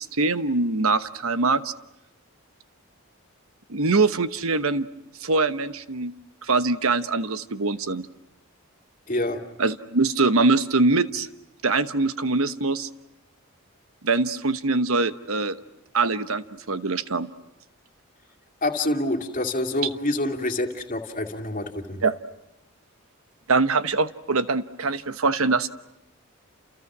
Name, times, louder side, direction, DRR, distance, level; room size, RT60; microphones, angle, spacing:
voice 1, 0.0-1.7 3.7-4.9 5.2-6.1 6.4-8.1 9.6-11.3 11.6-12.9 14.0-15.6 15.9-17.3 22.0-22.2 23.5-25.7, right 3 dB, 75° right, 11 dB, 1.1 m, -23 dB
voice 2, 9.1-9.4 18.6-22.0, left 1 dB, 35° left, 4 dB, 2.3 m, -27 dB
30.0 x 28.5 x 6.1 m, 0.88 s
head